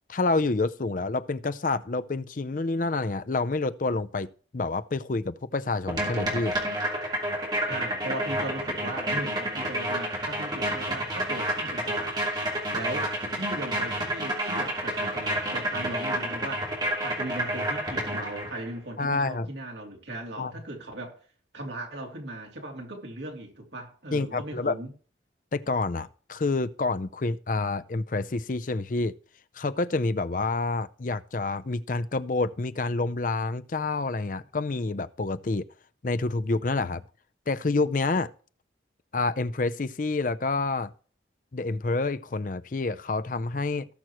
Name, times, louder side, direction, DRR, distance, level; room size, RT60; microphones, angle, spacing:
voice 1, 0.1-6.6 19.0-19.5 20.4-20.5 24.1-24.8 25.5-29.1 29.5-35.7 36.0-37.0 37.5-38.3 39.1-40.9 41.5-43.9, left 3 dB, 45° left, 0.5 m, -28 dB
sound 1, 5.9-18.7, right 1 dB, 25° right, 3.0 m, -30 dB
voice 2, 7.7-12.2 12.7-21.1 21.5-24.9, right 1 dB, 75° right, 2.8 m, -38 dB
18.0 x 6.2 x 3.0 m
head